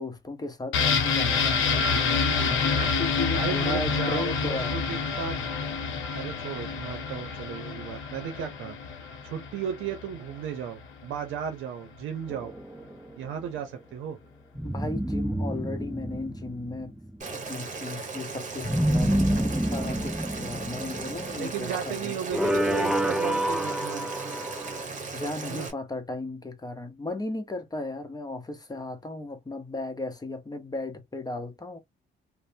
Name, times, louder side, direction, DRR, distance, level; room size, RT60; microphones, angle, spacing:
voice 1, 0.0-4.8 14.6-16.9 17.2-22.2 25.1-31.8, left 2 dB, 20° left, 0.8 m, -35 dB
sound 1, 0.7-10.4 10.7-10.8, left 5 dB, 90° left, 0.8 m, -28 dB
voice 2, 3.3-5.4 6.1-8.8 9.2-12.5 13.2-14.2 21.4-24.1 25.5-25.7, right 8 dB, 80° right, 0.6 m, -35 dB
sound 2, 12.3-13.3 14.6-17.2 18.6-21.8 22.3-24.8, right 1 dB, 5° right, 0.4 m, -28 dB
Boiling, 17.2-25.7, right 4 dB, 40° right, 1.2 m, -37 dB
3.0 x 2.0 x 2.7 m
cardioid pair, 90°, 20 cm